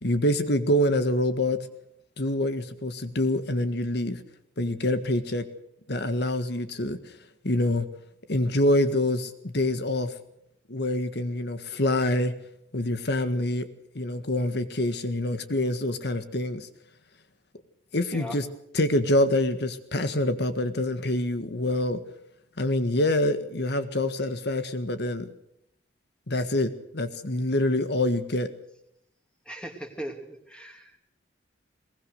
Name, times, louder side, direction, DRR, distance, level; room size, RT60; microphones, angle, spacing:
voice 1, 0.0-1.6 2.2-4.2 4.6-5.4 5.9-7.0 7.4-7.9 8.3-10.1 10.7-12.3 12.7-13.7 14.0-16.7 17.9-18.5 18.7-22.0 22.6-25.3 26.3-28.5, left 1 dB, 65° left, 10 dB, 1.7 m, -26 dB
voice 2, 29.5-30.9, equal, 5° left, 4 dB, 2.7 m, -38 dB
22.0 x 19.5 x 6.6 m, 0.76 s
head